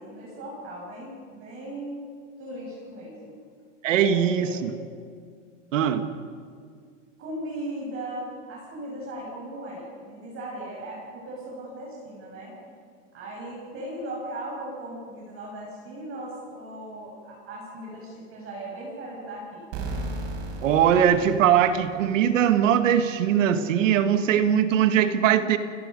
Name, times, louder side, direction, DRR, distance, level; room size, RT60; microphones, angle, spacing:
voice 1, 0.0-2.0 2.4-3.4 3.9-4.5 7.2-12.5 13.1-19.7, right 1 dB, 35° right, -3 dB, 6.2 m, -37 dB
voice 2, 3.8-4.7 5.7-6.1 20.6-25.6, right 9 dB, 85° right, 9 dB, 1.8 m, -21 dB
sound 1, 19.7-22.4, right 2 dB, 50° right, 6.0 m, -35 dB
29.5 x 18.0 x 5.3 m, 2.1 s
supercardioid pair, 135°, 37 cm